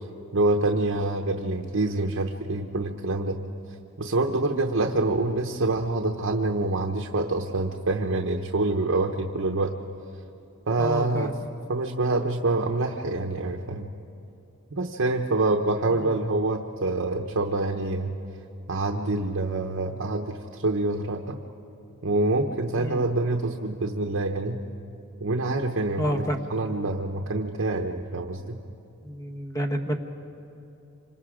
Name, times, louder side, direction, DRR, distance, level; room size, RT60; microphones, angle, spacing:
voice 1, 0.3-3.4 4.0-9.8 10.7-11.3 11.7-13.9 14.7-18.1 18.7-21.4 22.0-24.6 25.2-26.2 26.5-28.6, right 2 dB, 65° right, 3 dB, 0.9 m, -26 dB
voice 2, 10.8-11.5 16.0-16.1 22.8-23.0 26.0-26.5 29.0-30.0, equal, 15° left, 5 dB, 1.3 m, -29 dB
27.0 x 25.5 x 5.0 m, 2.9 s
head